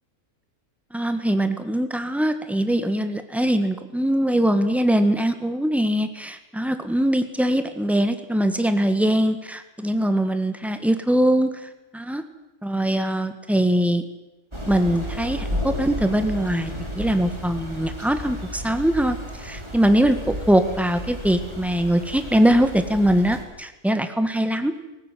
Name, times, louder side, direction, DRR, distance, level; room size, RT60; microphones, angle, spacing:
voice 1, 0.9-11.5 11.9-12.2 12.6-14.0 14.7-16.7 17.0-24.7, right 1 dB, ahead, 8 dB, 1.7 m, -22 dB
Thunder / Rain, 14.5-23.4, equal, 20° right, 5.2 m, -33 dB
20.5 x 18.0 x 9.3 m, 0.98 s
omnidirectional pair, 1.6 m